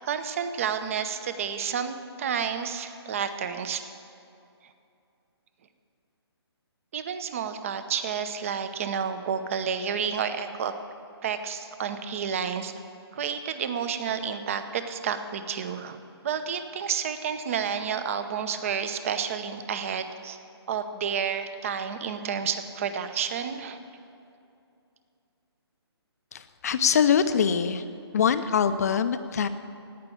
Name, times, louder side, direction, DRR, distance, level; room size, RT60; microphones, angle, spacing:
voice 1, 0.0-3.9 6.9-10.7 11.2-12.7 13.1-16.0 16.2-20.4 20.7-23.8, right 7 dB, 30° right, 9 dB, 0.8 m, -30 dB
voice 2, 26.3-27.8 28.1-29.5, left 7 dB, 35° left, 11 dB, 0.6 m, -23 dB
17.0 x 6.0 x 9.9 m, 2.6 s
hypercardioid pair, 165°, 14 cm